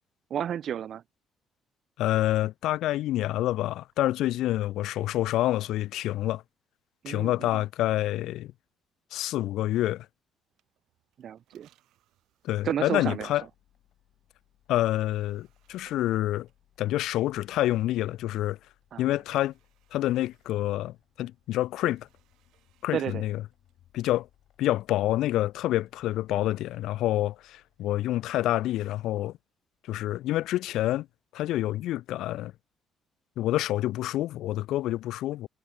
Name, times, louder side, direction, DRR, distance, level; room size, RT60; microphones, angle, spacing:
voice 1, 0.3-1.0 7.0-7.6 11.2-11.7 12.6-13.3 18.9-19.1 22.9-23.2, right 9 dB, 45° right, 0.4 m, -32 dB
voice 2, 2.0-6.4 7.1-8.5 9.1-10.1 12.4-13.4 14.7-16.5 16.8-18.6 19.0-19.5 19.9-22.1 22.8-23.4 23.9-24.3 24.6-29.3 29.8-31.1 31.3-32.5 33.4-35.5, left 15 dB, 75° left, 0.3 m, -27 dB
sound 1, 10.5-17.4 18.4-29.0, right 15 dB, 80° right, 4.3 m, -69 dB
sound 2, 13.1-28.4, left 12 dB, 60° left, 3.2 m, -66 dB
cardioid pair, 165°, 0 cm